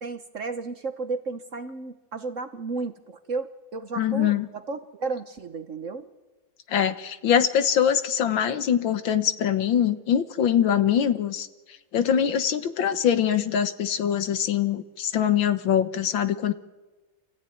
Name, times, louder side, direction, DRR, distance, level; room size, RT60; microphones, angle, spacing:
voice 1, 0.0-3.5 3.7-6.0, right 4 dB, 50° right, 9 dB, 1.2 m, -33 dB
voice 2, 4.0-4.5 6.7-11.5 11.9-16.5, left 9 dB, 75° left, 10 dB, 1.9 m, -23 dB
27.5 x 15.5 x 9.4 m, 1.2 s
omnidirectional pair, 2.1 m